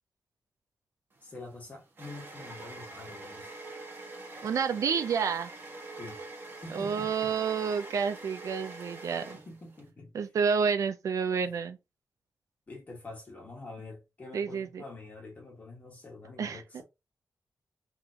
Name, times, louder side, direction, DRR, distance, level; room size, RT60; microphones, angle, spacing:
voice 1, 1.2-3.5 6.0-6.3 6.6-7.3 8.9-10.1 11.4-11.5 12.7-16.8, left 2 dB, 30° left, 1.7 m, -46 dB
sound 1, 1.2-9.9, right 2 dB, 40° right, 1.1 m, -45 dB
voice 2, 4.4-5.5 6.7-9.4 10.1-11.8 14.3-14.8 16.4-16.8, right 6 dB, 75° right, 0.6 m, -29 dB
3.9 x 3.1 x 2.9 m
wide cardioid pair, 165°, 6 cm